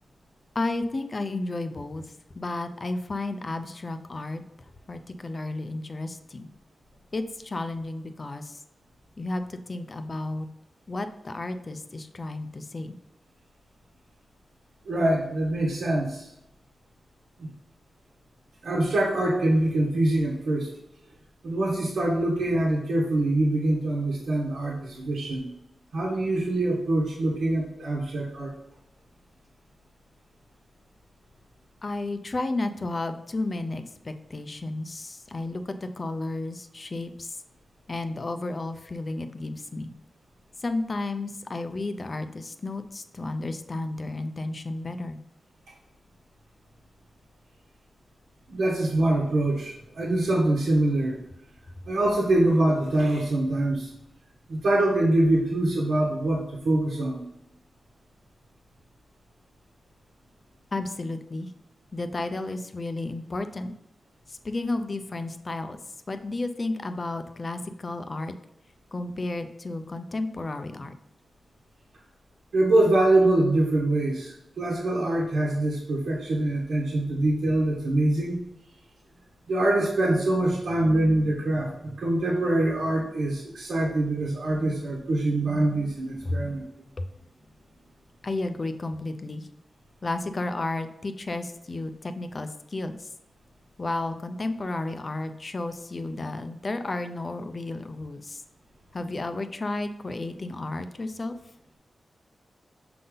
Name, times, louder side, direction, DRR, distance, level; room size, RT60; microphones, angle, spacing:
voice 1, 0.6-2.1 2.4-4.4 4.9-6.5 7.1-8.6 9.2-10.5 10.9-13.0 31.8-37.4 37.9-39.9 40.6-45.2 60.7-61.5 61.9-63.7 64.3-65.8 66.1-68.3 68.9-70.9 86.3-86.5 87.0-87.1 88.2-89.5 90.0-93.1 93.8-98.4 98.9-101.4, left 2 dB, 30° left, 9 dB, 0.5 m, -32 dB
voice 2, 14.9-16.3 17.4-17.5 18.6-20.7 21.4-25.5 25.9-28.5 48.5-51.2 51.9-53.9 54.5-57.2 72.5-78.4 79.5-86.6, right 1 dB, 75° right, -4 dB, 1.3 m, -24 dB
6.6 x 3.9 x 3.8 m, 0.84 s
wide cardioid pair, 170°, 0 cm